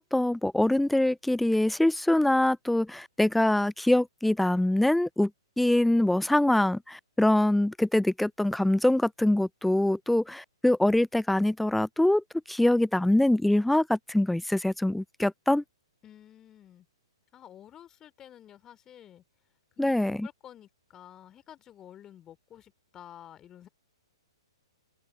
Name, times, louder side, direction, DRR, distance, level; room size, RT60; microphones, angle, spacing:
voice 1, 0.0-5.3 5.6-15.6 19.8-20.3, left 1 dB, ahead, 0.4 m, -24 dB
voice 2, 16.0-16.9 17.3-19.2 19.8-23.7, left 10 dB, 20° left, 3.6 m, -51 dB
figure-of-eight pair, 115°, 3 cm